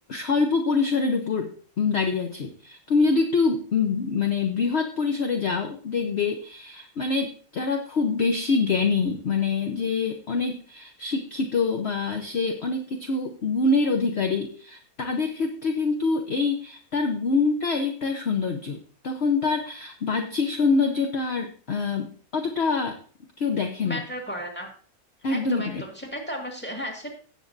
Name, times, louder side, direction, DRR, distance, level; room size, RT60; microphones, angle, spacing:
voice 1, 0.1-18.8 19.0-23.0 23.4-24.0 25.2-25.8, left 4 dB, 50° left, 5 dB, 1.0 m, -25 dB
voice 2, 23.8-24.7 25.3-27.1, equal, 5° left, 1 dB, 2.1 m, -34 dB
17.0 x 7.3 x 2.6 m, 0.42 s
omnidirectional pair, 1.6 m